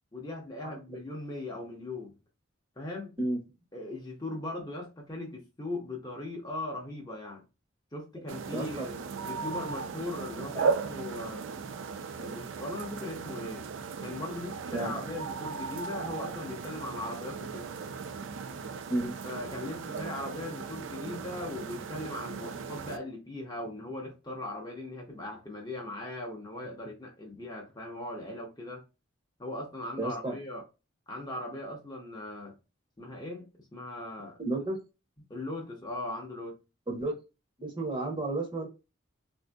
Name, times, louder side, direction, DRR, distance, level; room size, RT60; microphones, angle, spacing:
voice 1, 0.1-2.2 2.8-3.1 3.7-7.4 7.9-11.5 12.2-13.6 14.0-17.7 19.2-28.8 29.4-30.6 31.1-32.6 33.0-34.4 35.3-36.6, left 2 dB, 20° left, 0.7 m, -39 dB
sound 1, 8.3-23.0, right 5 dB, 70° right, 0.4 m, -37 dB
voice 2, 8.5-8.9 10.5-10.6 14.7-14.9 18.9-19.2 30.0-30.3 34.4-34.8 36.9-37.1 37.6-38.7, right 2 dB, 25° right, 0.8 m, -32 dB
3.6 x 2.6 x 2.2 m
head